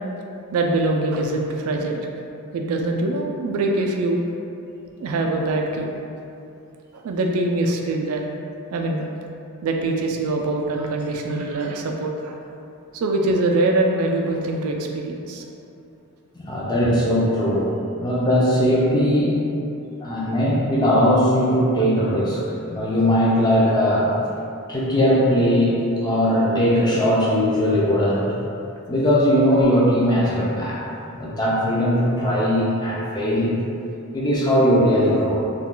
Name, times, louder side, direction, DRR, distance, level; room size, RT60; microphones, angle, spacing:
voice 1, 0.5-2.1 2.5-4.2 5.0-5.9 6.9-8.2 8.7-9.0 9.6-12.4 12.9-15.4, right 2 dB, 80° right, 2 dB, 0.3 m, -23 dB
voice 2, 16.4-17.7 18.0-19.3 20.0-24.1 24.7-28.3 28.9-30.8 31.1-33.5 34.1-35.4, equal, 20° left, -6 dB, 0.4 m, -19 dB
2.3 x 2.1 x 3.7 m, 2.7 s
head